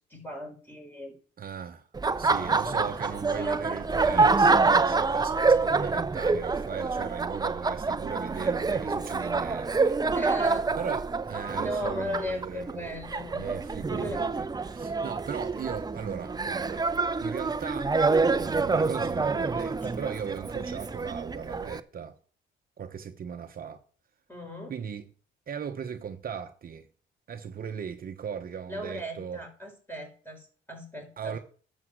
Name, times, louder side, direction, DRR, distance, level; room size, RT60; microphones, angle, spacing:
voice 1, 0.1-1.2 2.1-3.8 10.1-10.7 11.6-13.6 13.9-14.2 24.3-24.7 28.7-31.4, equal, 10° left, 5.1 m, -37 dB
voice 2, 1.4-1.9 2.2-10.0 10.8-13.0 13.3-16.9 17.2-22.2 22.8-23.8 24.7-25.1 25.5-26.9 27.3-29.4 31.2-31.4, right 7 dB, 45° right, 1.0 m, -38 dB
Laughter, 1.9-21.8, right 4 dB, 20° right, 0.6 m, -27 dB
11.0 x 7.4 x 6.4 m
cardioid pair, 90°, 20 cm